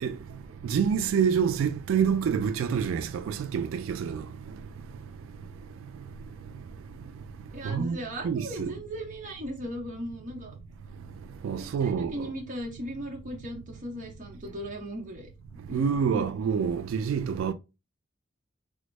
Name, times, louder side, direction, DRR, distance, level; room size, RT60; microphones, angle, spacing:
voice 1, 0.6-4.2 7.7-8.0 8.2-8.7 11.4-12.1 15.7-17.5, right 7 dB, 85° right, 0.3 m, -27 dB
voice 2, 7.5-10.6 11.6-15.3 15.7-16.3, equal, 40° right, 0.8 m, -37 dB
3.3 x 2.1 x 3.1 m
head